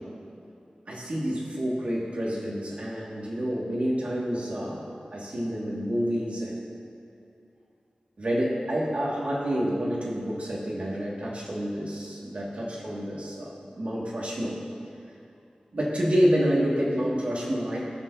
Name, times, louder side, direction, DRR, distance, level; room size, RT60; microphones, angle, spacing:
voice 1, 0.9-4.8 5.1-6.6 8.2-14.6 15.7-17.9, equal, 60° right, -5 dB, 2.1 m, -28 dB
19.5 x 6.9 x 2.8 m, 2.6 s
wide cardioid pair, 85°, 3 cm